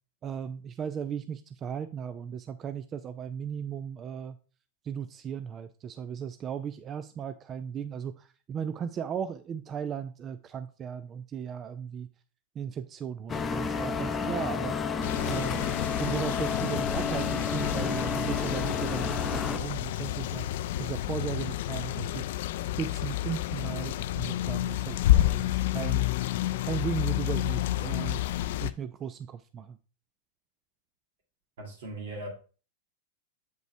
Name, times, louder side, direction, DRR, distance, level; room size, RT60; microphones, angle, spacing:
voice 1, 0.2-4.4 4.8-12.1 12.6-14.8 15.2-15.6 16.0-20.5 20.8-22.3 22.8-26.1 26.7-28.2 28.6-29.8, right 7 dB, 25° right, 0.4 m, -36 dB
sound 1, 13.3-19.6, left 5 dB, 20° left, 0.6 m, -31 dB
sound 2, 15.0-28.7, left 14 dB, 65° left, 0.4 m, -30 dB
voice 2, 31.6-32.3, right 2 dB, 70° right, 2.6 m, -39 dB
7.6 x 5.3 x 3.3 m
supercardioid pair, 135°, 0 cm